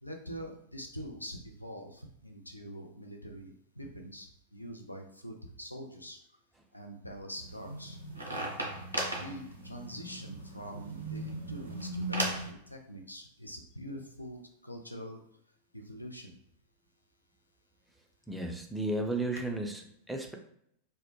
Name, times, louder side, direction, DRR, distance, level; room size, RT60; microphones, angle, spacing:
voice 1, 0.0-6.2 6.7-8.0 9.1-15.2 15.7-16.4, equal, 85° left, 3 dB, 0.3 m, -44 dB
sound 1, 7.4-12.5, right 1 dB, 85° right, 0.4 m, -37 dB
voice 2, 18.3-20.3, right 2 dB, 5° right, 2 dB, 0.3 m, -34 dB
2.1 x 2.0 x 2.8 m, 0.71 s
figure-of-eight pair, 90°, 0 cm